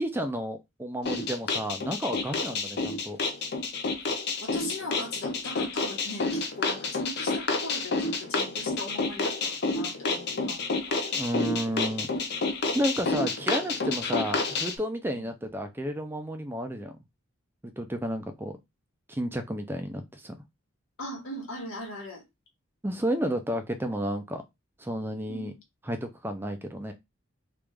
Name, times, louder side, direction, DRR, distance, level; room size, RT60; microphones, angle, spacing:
voice 1, 0.0-3.2 11.1-12.1 12.7-16.9 17.8-18.5 19.1-20.3 22.8-24.4 24.8-25.5 25.8-26.9, equal, 10° right, 0.4 m, -31 dB
sound 1, 1.0-14.7, left 3 dB, 55° left, 0.6 m, -30 dB
voice 2, 4.4-11.0 12.6-12.8 15.1-15.3 21.0-22.2 25.3-25.6, left 1 dB, 90° left, 1.5 m, -40 dB
3.1 x 2.5 x 3.4 m
head